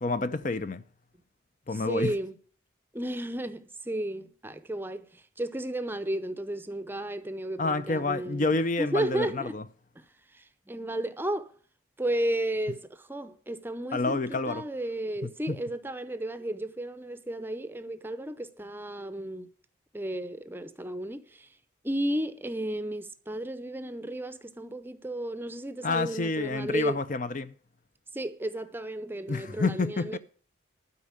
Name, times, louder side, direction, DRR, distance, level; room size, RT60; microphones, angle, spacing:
voice 1, 0.0-0.8 1.7-2.1 7.6-9.6 13.9-14.6 15.5-15.6 25.8-27.5 29.3-30.2, left 3 dB, 40° left, 0.5 m, -28 dB
voice 2, 1.7-2.4 2.9-9.6 10.0-10.1 10.3-11.5 12.0-19.5 19.9-21.6 21.8-27.0 28.1-30.2, right 1 dB, 10° right, 0.6 m, -33 dB
12.5 x 5.1 x 8.8 m
head